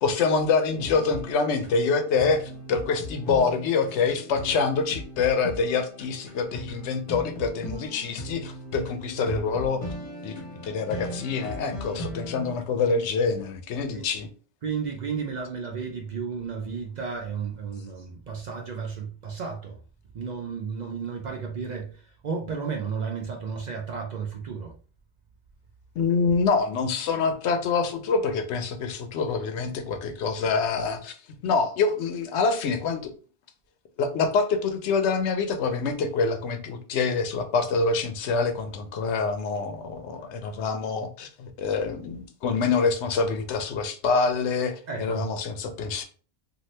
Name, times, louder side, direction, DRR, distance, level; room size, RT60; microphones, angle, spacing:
voice 1, 0.0-9.9 10.2-14.3 26.0-31.2 31.4-33.1 34.0-46.0, left 4 dB, 85° left, 0.9 m, -26 dB
sound 1, 0.7-12.5, equal, 40° left, 1.0 m, -38 dB
voice 2, 14.6-19.8 20.1-24.8 44.9-45.2, right 5 dB, 55° right, 0.5 m, -33 dB
2.7 x 2.5 x 3.1 m
omnidirectional pair, 1.1 m